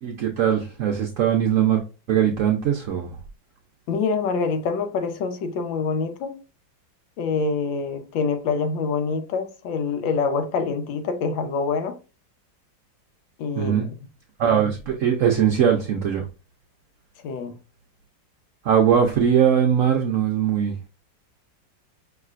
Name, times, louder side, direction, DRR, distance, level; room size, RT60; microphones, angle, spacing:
voice 1, 0.0-1.8 2.1-3.2 13.6-13.9 14.4-16.2 18.6-20.7, right 8 dB, 65° right, 0.8 m, -20 dB
voice 2, 3.9-6.4 7.2-12.0 13.4-14.1 17.2-17.6, left 4 dB, 85° left, 1.5 m, -26 dB
5.7 x 3.2 x 2.4 m
omnidirectional pair, 2.0 m